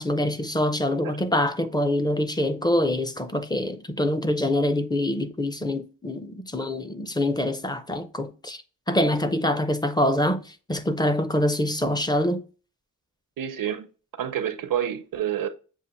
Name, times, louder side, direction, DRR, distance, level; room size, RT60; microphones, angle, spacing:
voice 1, 0.0-8.6 8.9-10.4 10.7-12.4, left 1 dB, 15° left, 0.5 m, -25 dB
voice 2, 13.4-13.9 14.2-15.5, right 10 dB, 85° right, 0.7 m, -28 dB
7.1 x 2.5 x 2.9 m
wide cardioid pair, 100°, 33 cm